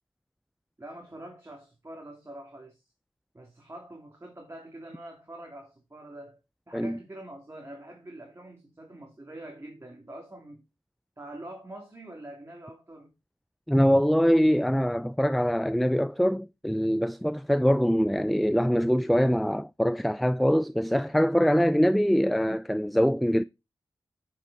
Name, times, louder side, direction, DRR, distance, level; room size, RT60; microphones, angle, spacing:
voice 1, 0.8-2.8 3.3-6.4 6.7-10.6 11.2-13.1, right 1 dB, 25° right, 2.7 m, -45 dB
voice 2, 13.7-23.4, equal, ahead, 0.4 m, -23 dB
8.3 x 6.3 x 4.1 m
cardioid pair, 40°, 10 cm